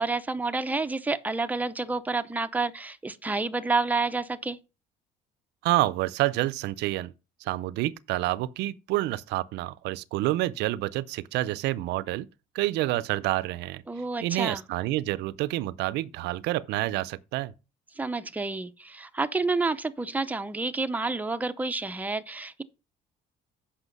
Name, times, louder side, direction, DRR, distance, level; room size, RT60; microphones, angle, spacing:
voice 1, 0.0-4.6 13.9-14.6 18.0-22.6, right 3 dB, 10° right, 0.7 m, -29 dB
voice 2, 5.6-7.1 7.4-12.3 12.5-13.8 14.2-17.5, right 16 dB, 85° right, 0.5 m, -28 dB
8.1 x 5.8 x 5.4 m
cardioid pair, 110°, 17 cm